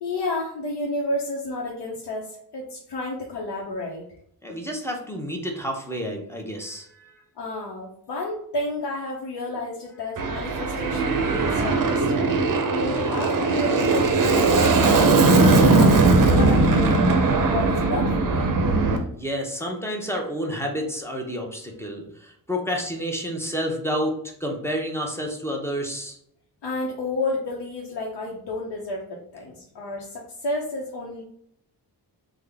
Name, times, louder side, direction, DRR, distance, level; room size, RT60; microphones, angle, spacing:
voice 1, 0.0-4.1 7.4-12.3 12.7-18.5 26.6-31.2, left 2 dB, 90° left, -2 dB, 0.7 m, -31 dB
voice 2, 4.4-7.2 19.2-26.2, equal, 5° left, 1 dB, 0.5 m, -30 dB
Aircraft, 10.2-19.0, right 3 dB, 55° right, 0.5 m, -19 dB
3.5 x 2.0 x 3.3 m, 0.69 s
wide cardioid pair, 140°, 40 cm